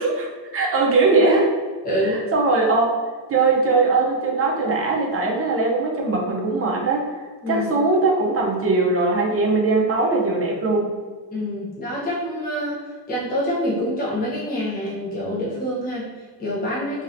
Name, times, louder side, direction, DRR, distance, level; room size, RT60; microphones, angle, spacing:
voice 1, 0.0-1.5 2.0-2.9 3.3-11.0, right 3 dB, 35° right, -1 dB, 0.5 m, -20 dB
voice 2, 1.8-2.2 7.4-7.7 11.3-17.0, equal, 20° left, -7 dB, 0.8 m, -26 dB
3.1 x 2.7 x 2.5 m, 1.4 s
cardioid pair, 145°, 43 cm